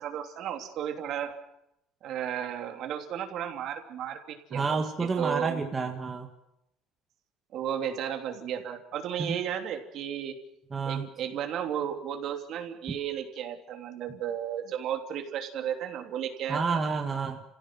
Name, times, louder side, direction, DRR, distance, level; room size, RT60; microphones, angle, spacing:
voice 1, 0.0-1.4 2.0-5.6 7.5-10.4 10.9-16.8, right 9 dB, 55° right, 4 dB, 3.1 m, -34 dB
voice 2, 4.5-6.3 9.2-9.4 10.7-11.0 16.5-17.4, right 4 dB, 20° right, 3 dB, 1.9 m, -29 dB
29.5 x 16.5 x 7.7 m, 0.82 s
cardioid pair, 150°, 0 cm